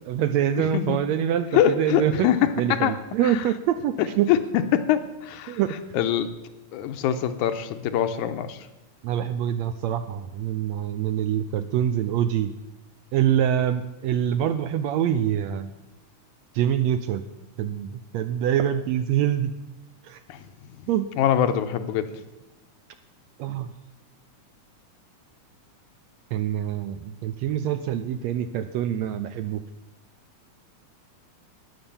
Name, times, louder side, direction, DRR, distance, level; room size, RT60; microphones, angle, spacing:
voice 1, 0.0-2.3 2.6-4.3 5.5-5.8 9.0-12.5 13.1-15.7 16.5-17.3 17.6-19.5 20.0-20.2 20.9-21.1 23.4-23.7 26.3-29.6, right 10 dB, 80° right, 10 dB, 1.6 m, -25 dB
voice 2, 1.5-3.0 3.2-3.4 4.3-4.4 4.7-5.6 5.9-6.3 6.7-8.6 20.3-20.4 21.2-22.1, left 10 dB, 80° left, 9 dB, 2.1 m, -23 dB
13.0 x 9.8 x 7.0 m, 1.0 s
omnidirectional pair, 3.6 m